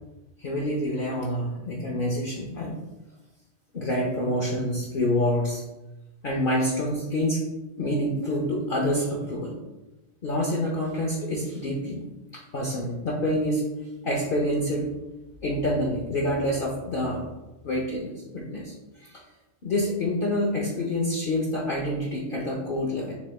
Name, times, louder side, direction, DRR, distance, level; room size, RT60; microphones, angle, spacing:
voice 1, 0.4-2.8 3.7-5.6 6.2-7.4 7.8-9.6 10.2-12.0 12.3-13.6 14.0-14.9 15.4-17.2 17.6-19.2 19.6-23.1, left 1 dB, 50° left, -2 dB, 0.8 m, -27 dB
7.0 x 3.3 x 2.2 m, 1.0 s
omnidirectional pair, 1.3 m